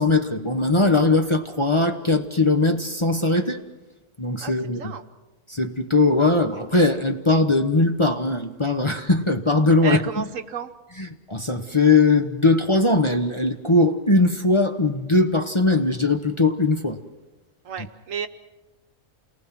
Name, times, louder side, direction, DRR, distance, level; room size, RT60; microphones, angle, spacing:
voice 1, 0.0-3.6 4.2-4.9 5.5-10.0 11.0-17.0, left 3 dB, 25° left, 4 dB, 1.0 m, -20 dB
voice 2, 9.8-10.7 17.6-18.3, right 5 dB, 65° right, 9 dB, 1.3 m, -30 dB
28.5 x 19.5 x 6.0 m, 1.1 s
omnidirectional pair, 1.5 m